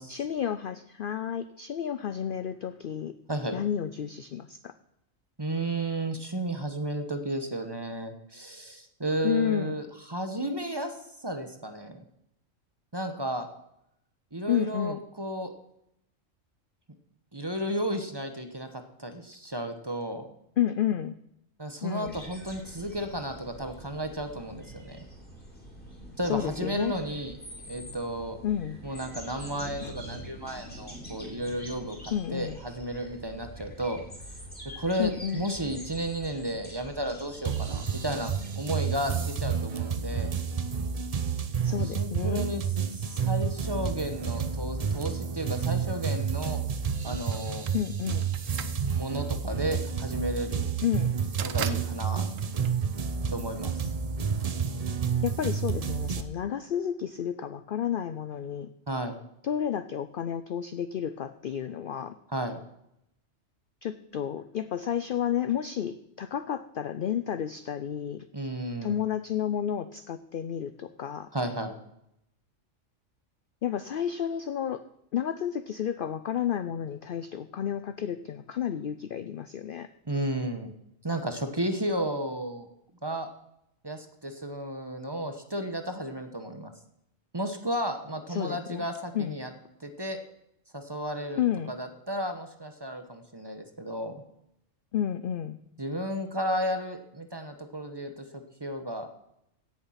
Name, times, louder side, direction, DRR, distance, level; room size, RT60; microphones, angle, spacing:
voice 1, 0.1-3.1 3.5-4.7 9.2-9.7 14.5-15.0 20.6-21.1 21.8-22.2 26.2-26.9 28.4-28.8 29.8-29.9 32.1-32.6 35.0-35.4 41.6-42.5 47.7-48.3 50.8-51.1 55.2-58.7 59.4-62.1 63.8-68.2 68.8-71.3 73.6-74.8 75.1-79.9 88.3-88.9 89.1-89.4 91.4-91.7 94.9-95.6, left 9 dB, 60° left, 12 dB, 0.6 m, -31 dB
voice 2, 5.4-12.0 12.9-13.5 14.3-15.5 17.3-20.3 21.6-25.0 26.2-27.3 27.7-28.4 28.8-34.0 34.8-40.3 41.8-42.6 42.9-46.6 47.0-47.7 48.9-50.7 51.4-52.3 53.3-53.9 58.9-59.2 62.3-62.6 68.3-69.0 71.3-71.8 80.1-80.7 81.0-82.7 83.0-83.3 83.8-86.7 87.3-89.5 89.8-90.2 90.7-91.4 91.7-94.2 95.8-99.1, right 1 dB, 20° right, 6 dB, 1.0 m, -33 dB
sound 1, 22.0-39.2, right 1 dB, 5° left, 3.2 m, -45 dB
sound 2, 37.4-56.2, right 6 dB, 40° right, 0.6 m, -30 dB
sound 3, 47.3-53.5, right 9 dB, 75° right, 1.1 m, -40 dB
16.5 x 7.0 x 5.7 m, 0.80 s
omnidirectional pair, 1.4 m